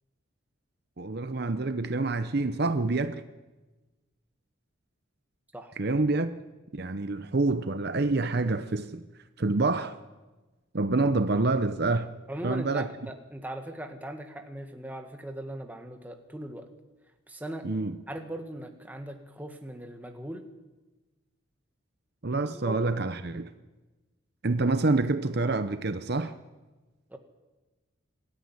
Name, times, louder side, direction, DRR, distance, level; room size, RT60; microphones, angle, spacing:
voice 1, 1.0-3.2 5.8-6.3 6.7-9.0 9.4-10.0 10.7-12.1 12.4-12.9 17.6-18.0 22.2-23.5 24.4-26.3, right 3 dB, 50° right, 10 dB, 0.8 m, -27 dB
voice 2, 12.3-16.7 17.3-17.7 18.1-20.5 22.5-22.8 27.1-27.2, right 1 dB, 10° right, 4 dB, 1.7 m, -39 dB
23.0 x 13.5 x 9.8 m, 1.2 s
head